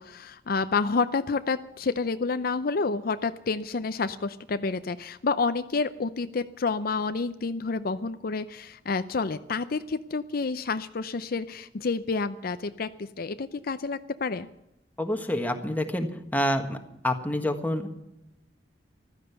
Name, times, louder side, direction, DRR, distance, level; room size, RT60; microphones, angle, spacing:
voice 1, 0.0-14.5, left 4 dB, 55° left, 11 dB, 0.6 m, -29 dB
voice 2, 15.0-16.8 17.0-18.0, left 1 dB, 10° left, 5 dB, 1.5 m, -27 dB
15.0 x 13.0 x 6.9 m, 0.86 s
head